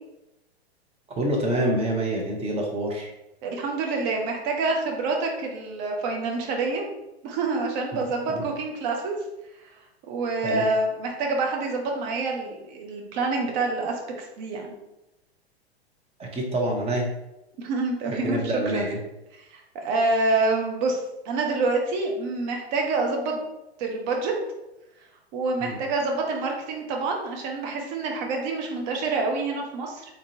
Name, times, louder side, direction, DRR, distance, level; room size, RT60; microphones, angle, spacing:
voice 1, 1.2-3.1 7.9-8.0 8.3-8.4 10.4-10.6 16.2-17.1 18.1-19.0 25.6-25.8, right 1 dB, 20° right, 0 dB, 0.8 m, -26 dB
voice 2, 3.4-6.8 7.2-9.2 10.1-14.7 17.6-18.8 19.5-21.0 21.2-23.4 23.8-24.3 25.3-30.0, right 3 dB, 45° right, 1 dB, 1.0 m, -27 dB
3.8 x 3.7 x 2.8 m, 0.93 s
hypercardioid pair, 110°, 32 cm